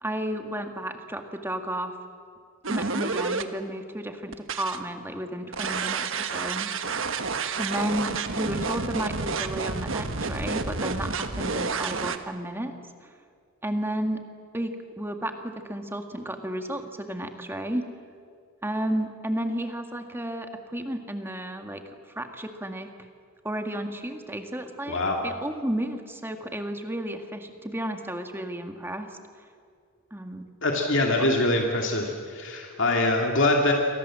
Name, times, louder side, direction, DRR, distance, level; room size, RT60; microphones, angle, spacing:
voice 1, 0.0-1.9 2.7-6.7 7.6-12.7 13.0-13.1 13.6-14.2 14.5-17.9 18.6-21.8 22.1-22.9 23.4-29.1 30.1-30.5 31.2-31.3, right 1 dB, 10° right, 5 dB, 1.8 m, -32 dB
sound 1, 2.6-3.4 4.3-4.8 5.5-12.2, right 4 dB, 60° right, 1.4 m, -30 dB
voice 2, 24.9-25.2 30.6-33.7, left 2 dB, 55° left, 1 dB, 2.6 m, -24 dB
28.5 x 23.5 x 7.6 m, 2.3 s
head